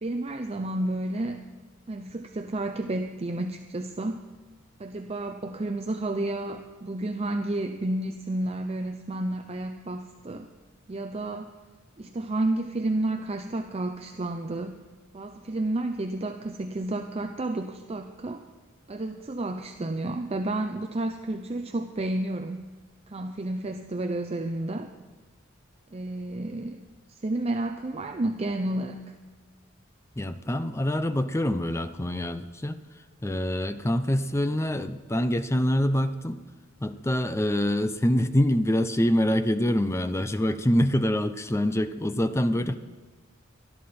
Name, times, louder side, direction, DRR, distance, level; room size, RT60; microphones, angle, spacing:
voice 1, 0.0-1.5 1.9-4.3 4.8-10.5 10.9-11.5 12.0-14.8 15.1-18.4 18.9-22.7 23.1-24.9 25.9-26.8 27.1-29.2, right 2 dB, 30° right, 6 dB, 0.6 m, -31 dB
voice 2, 30.2-32.8 33.2-36.4 36.8-42.8, left 1 dB, 15° left, 11 dB, 0.5 m, -25 dB
19.0 x 12.5 x 4.3 m, 1.4 s
head